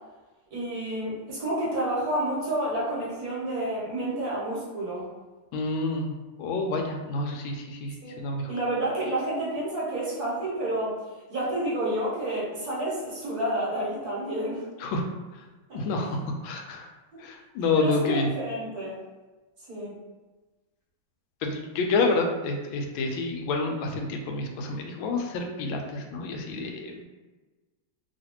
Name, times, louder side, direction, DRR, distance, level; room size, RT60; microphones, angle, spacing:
voice 1, 0.5-5.0 8.0-8.1 8.5-11.0 11.3-14.6 15.7-15.8 17.7-19.0 19.7-20.0, right 1 dB, 55° right, -7 dB, 1.3 m, -29 dB
voice 2, 5.5-6.1 6.4-8.5 14.8-15.1 15.7-16.2 16.4-16.9 17.2-18.3 21.4-27.0, left 3 dB, 90° left, 3 dB, 1.4 m, -28 dB
3.1 x 2.8 x 2.8 m, 1.2 s
omnidirectional pair, 2.1 m